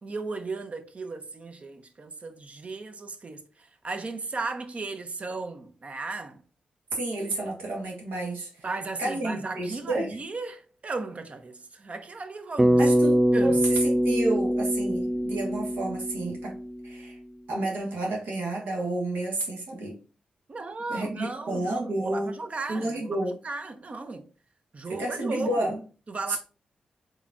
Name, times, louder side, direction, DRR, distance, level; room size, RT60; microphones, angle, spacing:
voice 1, 0.0-6.4 8.6-12.9 13.3-13.6 20.5-23.2 23.4-24.3 24.7-25.7 26.1-26.4, right 3 dB, 45° right, 0.7 m, -35 dB
voice 2, 6.9-8.7 9.0-10.2 12.8-16.6 16.8-17.2 17.5-20.0 20.9-22.3 22.7-23.4 24.9-25.8 26.3-26.4, right 2 dB, 85° right, 1.3 m, -30 dB
Bass guitar, 12.6-17.0, equal, 15° right, 0.4 m, -23 dB
3.9 x 3.1 x 2.5 m
supercardioid pair, 40°, 3 cm